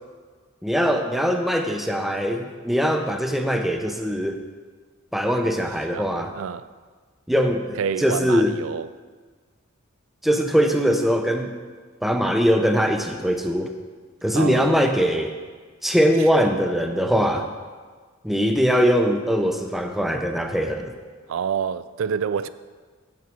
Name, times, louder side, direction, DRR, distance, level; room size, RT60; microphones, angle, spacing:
voice 1, 0.6-4.4 5.1-6.3 7.3-8.5 10.2-11.5 12.0-13.7 14.2-15.3 15.8-17.5 18.2-20.9, equal, ahead, 0.5 m, -21 dB
voice 2, 5.9-6.7 7.8-8.9 14.3-14.8 21.3-22.5, right 7 dB, 70° right, 0.3 m, -28 dB
8.0 x 7.6 x 4.5 m
head